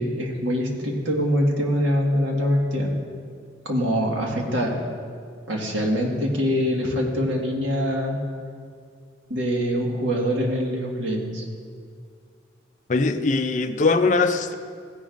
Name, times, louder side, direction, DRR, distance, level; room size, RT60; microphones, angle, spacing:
voice 1, 0.0-2.9 3.7-4.7 5.5-8.2 9.3-11.5, equal, 80° right, 1.7 m, -24 dB
voice 2, 12.9-14.5, left 3 dB, 40° left, 0.4 m, -21 dB
16.0 x 10.5 x 2.6 m
head